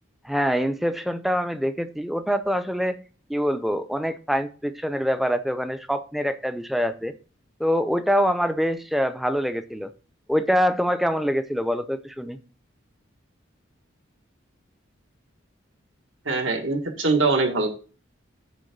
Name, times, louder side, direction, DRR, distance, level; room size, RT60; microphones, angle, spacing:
voice 1, 0.2-3.0 3.3-7.1 7.6-9.9 10.3-12.4, equal, ahead, 10 dB, 0.5 m, -25 dB
voice 2, 16.3-17.7, right 3 dB, 75° right, 3 dB, 1.7 m, -22 dB
9.2 x 3.4 x 6.7 m, 0.37 s
head